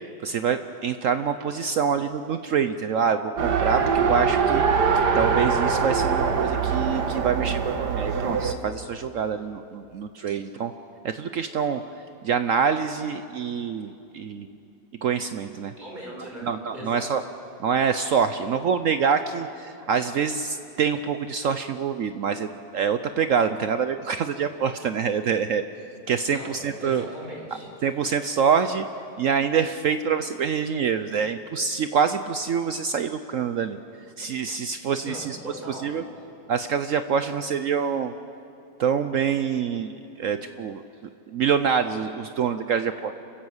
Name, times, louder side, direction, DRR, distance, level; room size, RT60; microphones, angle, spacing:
voice 1, 0.2-4.6 4.9-10.7 11.0-11.8 12.2-14.5 15.0-15.7 16.4-17.2 17.6-22.5 22.7-25.6 26.1-27.0 27.8-28.8 29.2-33.8 34.2-35.4 35.7-36.0 36.5-38.1 38.8-40.8 41.3-43.1, right 6 dB, 75° right, 10 dB, 0.7 m, -25 dB
Race car auto racing, 3.4-8.5, right 5 dB, 60° right, 1.7 m, -23 dB
voice 2, 15.7-17.1 26.3-27.7 35.0-35.9, equal, 20° right, -2 dB, 5.1 m, -39 dB
28.5 x 15.0 x 8.0 m, 2.7 s
omnidirectional pair, 2.1 m